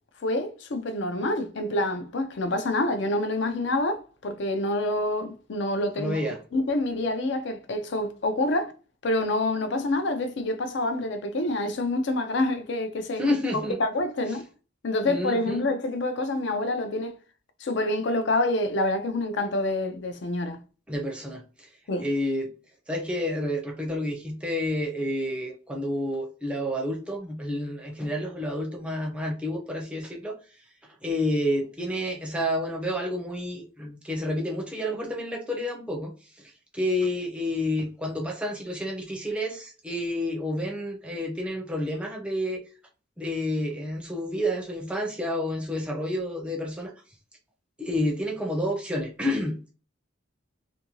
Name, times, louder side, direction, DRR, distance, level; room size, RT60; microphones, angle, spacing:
voice 1, 0.2-6.2 6.5-8.7 9.0-13.2 13.8-14.5 14.8-17.2 17.6-20.6 21.9-22.1, left 2 dB, 60° left, 0.5 m, -27 dB
voice 2, 6.0-6.4 13.2-13.8 15.1-15.7 20.9-21.7 22.0-22.5 22.9-30.4 31.0-36.1 36.7-42.6 43.2-46.9 47.8-49.7, left 1 dB, 5° right, 0.5 m, -29 dB
2.6 x 2.5 x 2.9 m
head